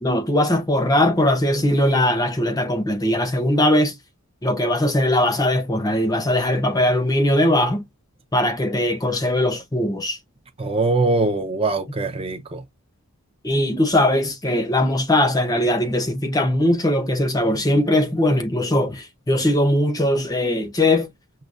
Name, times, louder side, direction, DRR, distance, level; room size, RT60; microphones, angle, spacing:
voice 1, 0.0-3.9 4.4-7.8 8.3-10.2 13.4-21.1, left 1 dB, 15° left, 0.6 m, -20 dB
voice 2, 10.6-12.6, right 3 dB, 25° right, 0.5 m, -22 dB
6.4 x 2.2 x 2.4 m
head